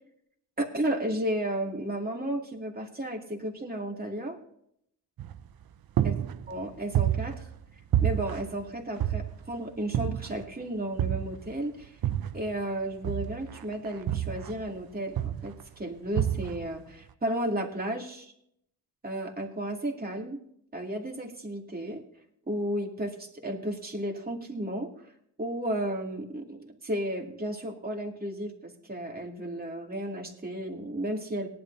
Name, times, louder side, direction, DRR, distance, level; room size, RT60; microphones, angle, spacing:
voice 1, 0.6-4.4 6.0-6.1 6.5-7.5 8.0-12.0 12.3-18.3 19.0-20.4 20.7-22.0 22.5-24.9 25.4-31.5, right 1 dB, 20° right, 0 dB, 2.6 m, -33 dB
sound 1, 5.2-5.6 6.0-7.6 7.9-9.5 9.9-10.5 11.0-12.5 13.0-14.8 15.2-15.6 16.1-16.8, right 11 dB, 60° right, 0.8 m, -29 dB
18.5 x 11.5 x 2.7 m, 0.70 s
cardioid pair, 105°, 41 cm